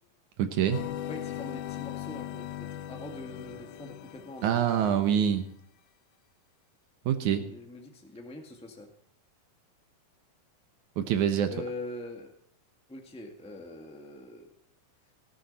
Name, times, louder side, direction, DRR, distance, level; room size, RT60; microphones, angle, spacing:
voice 1, 0.4-0.8 4.4-5.4 7.1-7.5 11.0-11.5, right 9 dB, 70° right, 8 dB, 2.2 m, -25 dB
sound 1, 0.7-5.0, left 12 dB, 75° left, 1.8 m, -39 dB
voice 2, 1.0-5.0 7.3-8.9 11.5-12.3 12.9-14.5, left 2 dB, 5° left, 2 dB, 0.6 m, -43 dB
18.0 x 12.0 x 4.2 m, 0.65 s
omnidirectional pair, 4.0 m